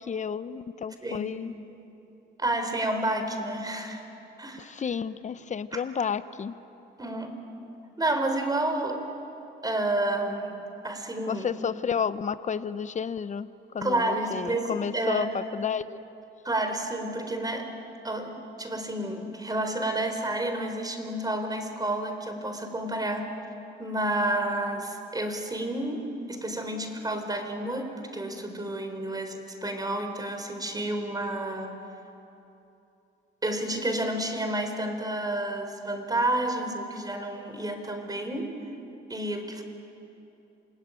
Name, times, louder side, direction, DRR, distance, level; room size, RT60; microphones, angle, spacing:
voice 1, 0.0-1.5 4.6-6.5 11.3-13.5 13.7-16.0, left 7 dB, 35° left, 14 dB, 0.9 m, -31 dB
voice 2, 1.0-1.3 2.4-4.0 4.4-4.7 5.7-5.8 7.0-7.4 8.0-9.1 9.6-11.5 13.8-15.3 16.4-17.7 18.0-23.3 23.8-31.8 33.4-38.6 39.1-39.6, right 1 dB, 20° right, 6 dB, 3.9 m, -30 dB
28.5 x 19.5 x 9.1 m, 2.9 s
cardioid pair, 90°, 20 cm